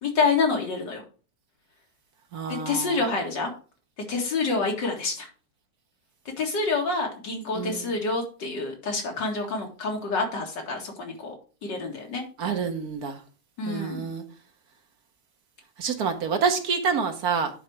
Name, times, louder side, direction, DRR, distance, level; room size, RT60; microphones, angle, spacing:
voice 1, 0.0-1.0 2.5-3.5 4.1-5.3 6.4-11.3 11.6-12.2 13.6-14.1, left 4 dB, 80° left, 1 dB, 2.6 m, -27 dB
voice 2, 2.3-3.0 7.5-7.8 12.4-13.2 13.6-14.2 15.8-17.5, right 6 dB, 60° right, 6 dB, 1.5 m, -27 dB
9.9 x 4.1 x 4.7 m, 0.36 s
omnidirectional pair, 1.9 m